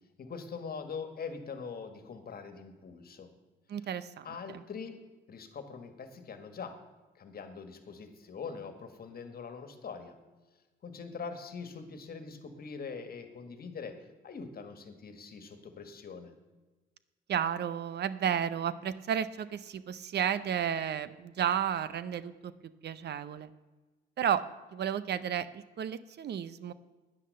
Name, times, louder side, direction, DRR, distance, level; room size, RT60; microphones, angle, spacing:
voice 1, 0.2-3.3 3.8-3.9 4.2-5.0 5.3-6.8 7.1-10.1 10.8-14.0 14.2-16.3, left 5 dB, 50° left, 8 dB, 1.7 m, -43 dB
voice 2, 3.7-4.6 17.3-22.5 22.8-23.5 24.2-24.4 24.7-26.7, right 9 dB, 55° right, 15 dB, 0.6 m, -32 dB
10.0 x 9.9 x 6.6 m, 1.2 s
cardioid pair, 90°, 20 cm